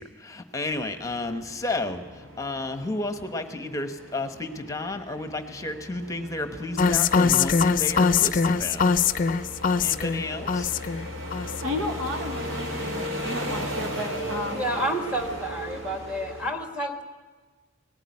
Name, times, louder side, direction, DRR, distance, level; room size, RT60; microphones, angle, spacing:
voice 1, 0.0-8.9 9.8-10.7, left 2 dB, 15° left, 8 dB, 1.1 m, -32 dB
sound 1, 0.7-16.5, equal, 70° right, 4.2 m, -37 dB
sound 2, 6.8-11.1 11.3-11.7, left 5 dB, 40° left, 0.5 m, -22 dB
voice 2, 11.6-14.7, left 2 dB, 85° right, 4 dB, 1.7 m, -33 dB
voice 3, 14.5-17.0, right 1 dB, 5° right, 4 dB, 1.6 m, -30 dB
19.0 x 14.5 x 9.7 m, 1.4 s
head